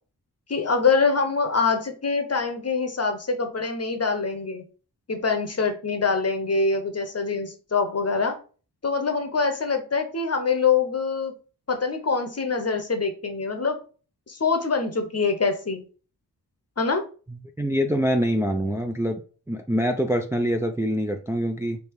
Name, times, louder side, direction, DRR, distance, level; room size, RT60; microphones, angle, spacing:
voice 1, 0.5-4.6 5.1-8.4 8.8-11.3 11.7-13.8 14.3-15.8 16.8-17.0, left 4 dB, 40° left, 6 dB, 0.8 m, -24 dB
voice 2, 17.6-19.2 19.5-21.8, equal, 5° right, 4 dB, 0.4 m, -24 dB
3.5 x 2.7 x 4.6 m, 0.38 s
cardioid pair, 65°, 39 cm